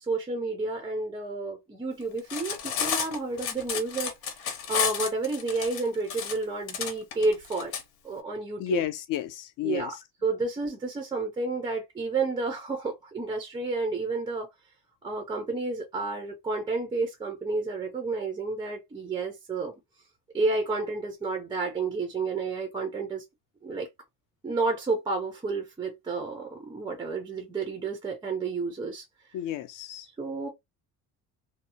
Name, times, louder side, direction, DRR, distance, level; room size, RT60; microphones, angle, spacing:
voice 1, 0.1-4.1 4.7-7.8 8.0-8.8 9.6-9.9 10.2-14.5 15.0-19.7 20.3-23.2 23.6-23.9 24.4-29.0 30.2-30.5, right 3 dB, 15° right, 0.3 m, -30 dB
Cutlery silverware, 2.2-7.8, left 7 dB, 90° left, 0.9 m, -31 dB
voice 2, 8.6-9.9 29.3-30.1, left 12 dB, 60° left, 0.5 m, -31 dB
2.6 x 2.0 x 2.6 m
cardioid pair, 170°, 37 cm